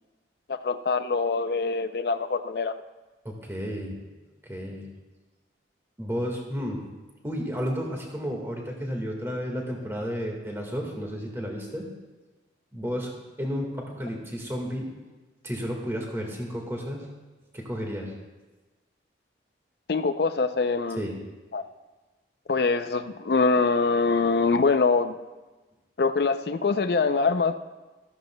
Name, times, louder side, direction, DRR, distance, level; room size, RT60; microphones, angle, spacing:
voice 1, 0.5-2.7 19.9-21.1 21.5-21.6 22.5-25.1 26.0-27.6, left 4 dB, 60° left, 10 dB, 0.5 m, -24 dB
voice 2, 3.2-4.0 4.4-4.9 6.0-6.8 7.2-11.9 12.7-13.1 13.4-14.9 15.4-17.1 17.5-18.1 21.0-21.2, equal, 15° right, 0 dB, 1.6 m, -32 dB
13.5 x 13.0 x 2.2 m, 1.2 s
head